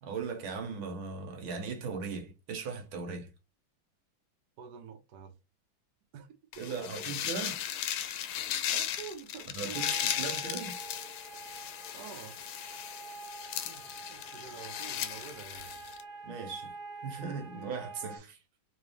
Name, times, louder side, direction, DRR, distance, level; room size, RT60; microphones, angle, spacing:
voice 1, 0.0-3.3 6.6-7.6 9.5-10.8 16.2-16.7 17.0-18.4, right 5 dB, 90° right, 1.9 m, -38 dB
voice 2, 4.6-5.3 6.1-7.2 8.7-9.9 11.9-12.4 13.6-15.7, right 6 dB, 60° right, 1.3 m, -48 dB
sound 1, 6.5-16.0, left 10 dB, 85° left, 1.5 m, -36 dB
sound 2, 9.7-18.2, right 3 dB, 25° right, 1.2 m, -47 dB
3.8 x 3.2 x 3.2 m
omnidirectional pair, 2.2 m